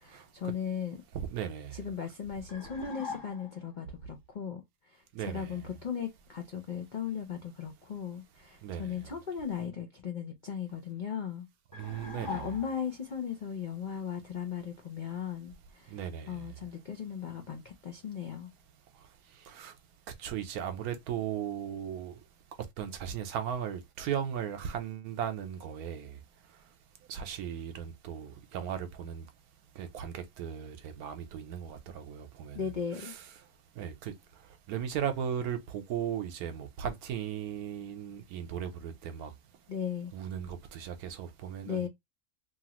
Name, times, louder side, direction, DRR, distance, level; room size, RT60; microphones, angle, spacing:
voice 1, 0.0-1.0 1.7-4.6 4.9-11.5 11.8-11.9 12.3-16.0 16.3-18.5 32.5-33.2 39.7-40.1 41.6-41.9, left 7 dB, 90° left, 0.4 m, -37 dB
voice 2, 1.1-1.7 5.1-5.6 8.6-9.0 11.7-12.5 15.9-16.4 19.5-19.7 20.2-22.1 22.8-26.1 27.1-29.2 29.8-32.7 33.0-33.3 33.8-34.1 34.7-39.3 40.1-41.9, right 8 dB, 80° right, 1.1 m, -37 dB
sound 1, 2.5-3.7 11.7-13.0, left 4 dB, 20° left, 0.7 m, -42 dB
3.0 x 2.4 x 2.9 m
omnidirectional pair, 1.6 m